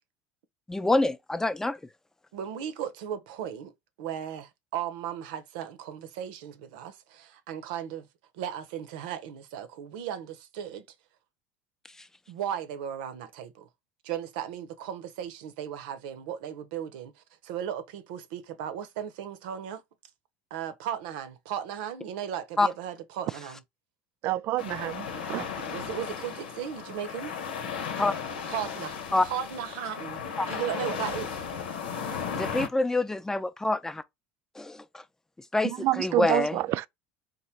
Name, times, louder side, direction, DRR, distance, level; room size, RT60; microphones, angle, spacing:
voice 1, 0.7-1.8 12.0-12.1 22.6-22.7 27.9-28.1 29.1-29.3 30.4-30.6 32.4-34.0 34.6-35.0 35.5-36.6, left 2 dB, 10° left, 0.6 m, -26 dB
voice 2, 2.3-3.7 4.0-8.1 8.3-10.8 12.3-13.7 14.0-17.1 17.4-19.8 20.5-23.6 25.7-27.4 28.5-29.0 29.2-30.2 30.5-31.3, right 9 dB, 75° right, 0.8 m, -36 dB
voice 3, 24.2-25.5 35.6-36.9, right 16 dB, 55° right, 0.3 m, -28 dB
sound 1, 24.6-32.7, left 7 dB, 85° left, 1.1 m, -35 dB
3.8 x 2.6 x 4.4 m
hypercardioid pair, 80°, 5 cm